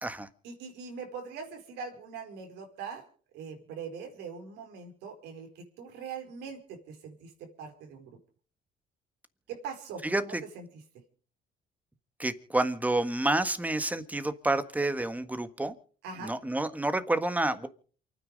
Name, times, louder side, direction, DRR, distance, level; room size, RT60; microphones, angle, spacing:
voice 1, 0.4-3.0 3.3-8.2 9.5-10.6 16.0-16.3, right 5 dB, 85° right, 4 dB, 4.6 m, -42 dB
voice 2, 10.0-10.4 12.2-15.7 16.2-17.7, right 2 dB, 10° right, 11 dB, 1.5 m, -29 dB
28.5 x 9.7 x 5.3 m, 0.44 s
cardioid pair, 110°, 17 cm